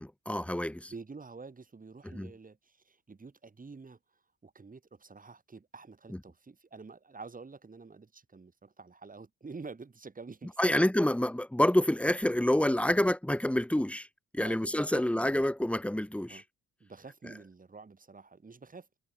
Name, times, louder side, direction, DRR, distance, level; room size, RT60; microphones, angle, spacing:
voice 1, 0.0-0.9 2.0-2.3 10.6-14.1 14.3-16.4, left 1 dB, 5° left, 3.1 m, -27 dB
voice 2, 0.9-4.0 4.4-10.8 14.4-15.5 16.3-16.4 16.8-18.9, right 4 dB, 30° right, 4.8 m, -48 dB
cardioid pair, 90°, 30 cm